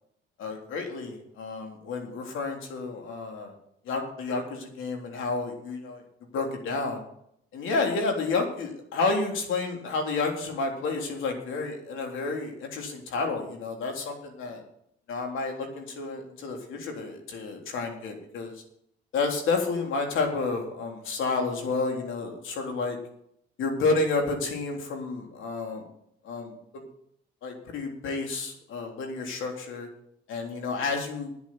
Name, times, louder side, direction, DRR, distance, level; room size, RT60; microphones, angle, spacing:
voice 1, 0.4-3.5 3.9-6.0 6.3-7.0 7.5-14.6 15.1-18.5 19.1-23.0 23.6-25.8 26.2-26.8 27.4-29.9 30.3-31.3, left 3 dB, 80° left, 2 dB, 3.4 m, -30 dB
10.0 x 8.4 x 7.9 m, 0.71 s
cardioid pair, 90°, 20 cm